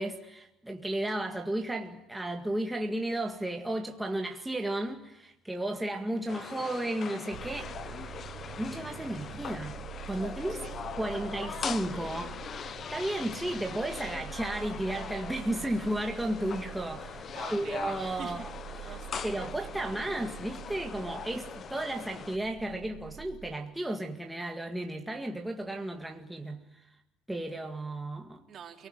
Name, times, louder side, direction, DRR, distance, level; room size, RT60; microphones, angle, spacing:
voice 1, 0.0-8.1 8.6-9.8 10.1-10.6 11.0-18.5 18.8-18.9 19.2-26.6 27.3-28.4, right 1 dB, 5° right, 2.0 m, -34 dB
sound 1, 6.3-22.4, left 7 dB, 40° left, 0.9 m, -41 dB
sound 2, 7.3-23.6, right 13 dB, 60° right, 1.0 m, -46 dB
voice 2, 10.5-11.5 17.3-18.5 18.8-19.3 28.5-28.9, right 8 dB, 45° right, 3.7 m, -46 dB
29.5 x 19.5 x 9.2 m
cardioid pair, 115°, 0 cm